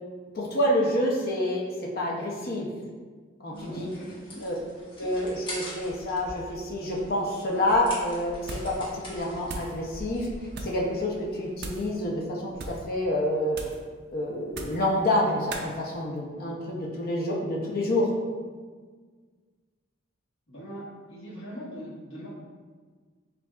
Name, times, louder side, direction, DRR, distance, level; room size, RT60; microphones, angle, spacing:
voice 1, 0.3-1.7 2.0-2.7 3.4-3.9 4.4-4.5 5.0-8.4 8.6-10.3 10.6-13.6 14.1-18.1, left 1 dB, 50° left, -2 dB, 0.6 m, -28 dB
voice 2, 3.5-4.5 20.5-20.8 21.1-22.3, equal, 70° left, -8 dB, 1.5 m, -41 dB
sound 1, 3.5-11.5, left 1 dB, 25° left, 1.0 m, -43 dB
sound 2, 8.4-8.8 9.1-9.8 10.5-10.8 11.6-11.9 12.5-12.9 13.5-13.9 14.5-14.9 15.5-15.7, right 2 dB, 55° right, 0.5 m, -38 dB
6.8 x 2.6 x 2.3 m, 1.5 s
head